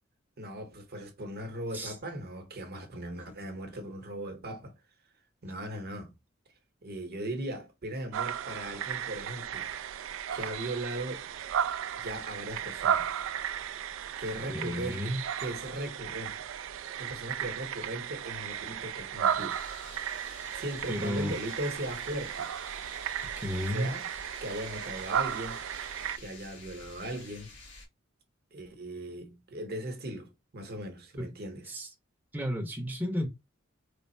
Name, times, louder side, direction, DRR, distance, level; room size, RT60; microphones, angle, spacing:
voice 1, 0.4-4.7 5.4-6.1 6.8-9.7 10.3-11.3 12.0-13.1 14.2-16.4 17.0-19.6 20.6-22.5 23.7-24.1 24.4-27.5 28.5-31.8, right 1 dB, 50° right, 0.9 m, -38 dB
sound 1, 8.1-26.2, right 9 dB, 75° right, 0.3 m, -35 dB
voice 2, 14.5-15.2 20.9-21.3 23.4-23.9 31.2-31.3 31.7-31.9 32.3-33.3, equal, 10° right, 0.7 m, -32 dB
sound 2, 19.5-27.9, left 2 dB, 65° left, 1.7 m, -50 dB
3.3 x 2.0 x 4.1 m
head